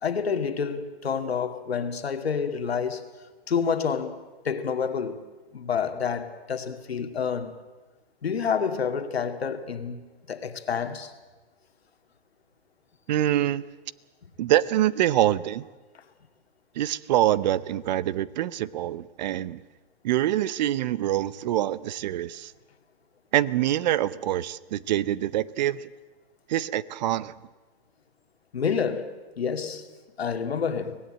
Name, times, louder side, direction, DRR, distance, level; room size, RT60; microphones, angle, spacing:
voice 1, 0.0-3.1 3.5-5.2 5.5-7.5 8.2-11.1 28.5-29.9 30.2-31.0, left 6 dB, 90° left, 2.2 m, -28 dB
voice 2, 13.1-13.6 14.4-15.7 16.7-19.6 20.0-22.5 23.3-25.9 26.5-27.4, right 13 dB, 45° right, 0.7 m, -25 dB
25.0 x 18.0 x 8.8 m
hypercardioid pair, 140°, 30 cm